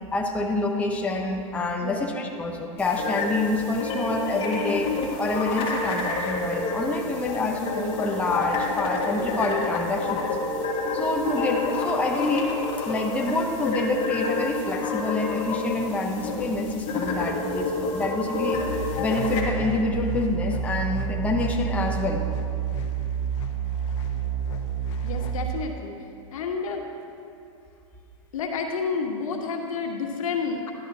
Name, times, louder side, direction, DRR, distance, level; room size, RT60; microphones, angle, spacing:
voice 1, 0.1-4.9 5.2-10.5 10.9-12.5 12.8-18.6 19.0-22.2, left 2 dB, 10° left, 1 dB, 0.7 m, -27 dB
sound 1, 2.8-19.4, left 3 dB, 30° left, 1.6 m, -29 dB
sound 2, 18.5-25.5, right 7 dB, 60° left, 0.9 m, -29 dB
voice 2, 25.0-25.9 26.3-26.8 28.3-30.7, left 5 dB, 75° left, 2 dB, 1.3 m, -30 dB
12.0 x 11.0 x 2.8 m, 2.5 s
hypercardioid pair, 135°, 18 cm